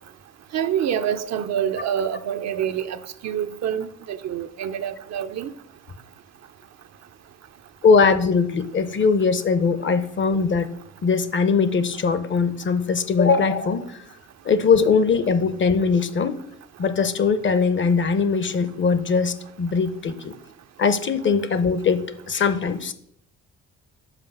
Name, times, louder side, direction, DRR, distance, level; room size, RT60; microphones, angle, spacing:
voice 1, 0.5-3.0 3.2-5.5, right 9 dB, 60° right, 0.5 m, -26 dB
voice 2, 7.8-10.7 11.0-14.0 14.4-16.4 16.8-20.3 20.8-22.9, left 5 dB, 40° left, 0.7 m, -21 dB
5.8 x 5.0 x 5.4 m
cardioid pair, 90°, 30 cm